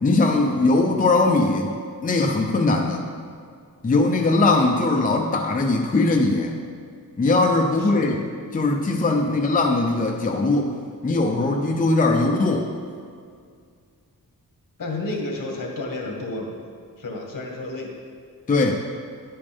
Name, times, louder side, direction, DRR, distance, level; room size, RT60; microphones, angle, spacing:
voice 1, 0.0-1.7 2.0-3.1 3.8-6.5 7.2-8.2 8.5-10.7 11.0-12.7 18.5-18.8, left 2 dB, 25° left, 2 dB, 0.6 m, -20 dB
voice 2, 7.8-8.2 14.8-16.6 17.0-17.9, left 2 dB, 65° left, 0 dB, 1.9 m, -31 dB
10.5 x 8.6 x 3.6 m, 2.1 s
wide cardioid pair, 145°, 34 cm